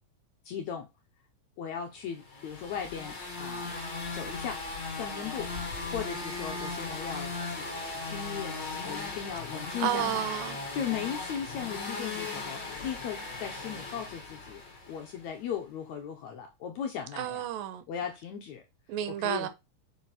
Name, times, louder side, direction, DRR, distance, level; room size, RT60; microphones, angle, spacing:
voice 1, 0.4-0.9 1.6-3.8 4.1-4.6 4.9-5.5 5.9-7.8 8.0-8.6 8.8-10.2 10.7-14.6 14.9-17.5 17.9-18.6 19.2-19.5, left 8 dB, 70° left, 1.8 m, -37 dB
sound 1, 2.3-15.2, left 3 dB, 35° left, 2.2 m, -37 dB
voice 2, 9.8-10.6 17.1-17.8 18.9-19.5, right 12 dB, 80° right, 2.4 m, -31 dB
6.5 x 5.2 x 4.1 m
omnidirectional pair, 4.2 m